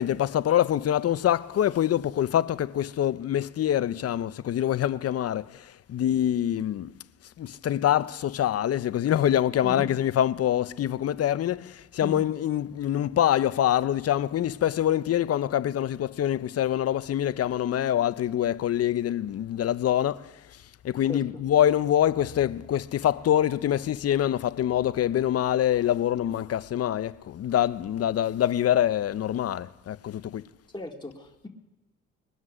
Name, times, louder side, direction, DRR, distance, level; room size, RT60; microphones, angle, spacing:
voice 1, 0.0-5.6 5.9-6.9 7.4-20.3 20.8-30.4, left 11 dB, 50° left, 0.6 m, -25 dB
voice 2, 21.1-21.4 30.7-31.5, left 2 dB, 15° left, 2.0 m, -38 dB
21.5 x 7.3 x 6.3 m
cardioid pair, 75°, 31 cm